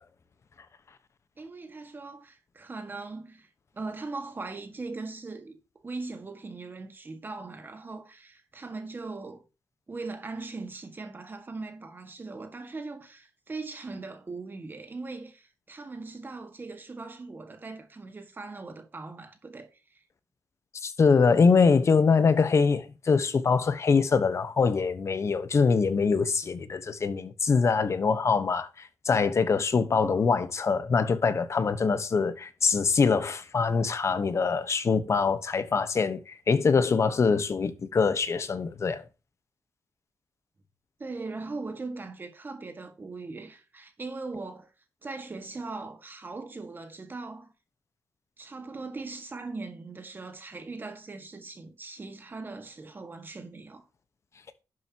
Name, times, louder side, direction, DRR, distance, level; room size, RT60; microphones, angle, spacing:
voice 1, 1.4-3.5 3.7-5.6 5.8-9.4 9.9-20.0 41.0-44.7 45.0-47.5 48.4-53.8, right 3 dB, 30° right, 1.6 m, -40 dB
voice 2, 20.8-39.0, left 5 dB, 45° left, 1.1 m, -24 dB
11.5 x 7.8 x 2.9 m
wide cardioid pair, 125°, 7 cm